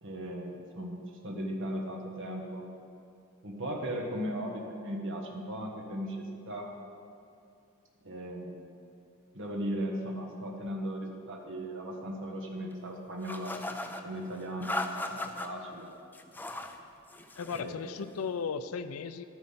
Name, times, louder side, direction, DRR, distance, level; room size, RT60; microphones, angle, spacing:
voice 1, 0.0-2.6 3.4-6.7 8.0-8.7 9.3-13.5 13.9-15.9 17.5-17.8, equal, 60° right, 0 dB, 1.4 m, -37 dB
sound 1, 13.2-14.0 14.6-15.5 16.1-16.8 17.1-17.7, left 2 dB, 10° left, 0.5 m, -37 dB
voice 2, 17.4-19.2, left 5 dB, 75° left, 11 dB, 0.5 m, -36 dB
11.5 x 9.2 x 5.7 m, 2.5 s
head